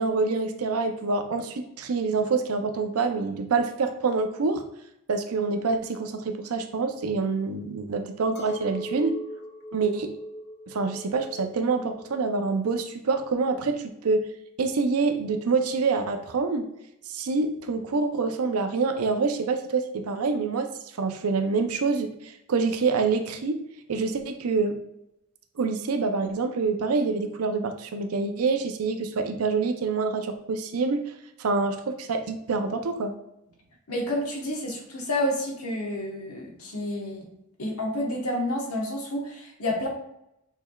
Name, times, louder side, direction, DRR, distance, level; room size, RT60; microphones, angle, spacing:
voice 1, 0.0-4.6 5.1-9.2 9.7-10.2 10.7-14.3 14.6-16.7 17.1-23.6 23.9-24.8 25.6-33.1, right 4 dB, 85° right, 7 dB, 0.6 m, -26 dB
Chink clink, 8.4-13.8, right 1 dB, 50° left, 0.6 m, -40 dB
voice 2, 33.9-37.3 37.6-39.9, left 1 dB, 85° left, 0 dB, 1.2 m, -29 dB
6.4 x 3.4 x 2.3 m, 0.82 s
head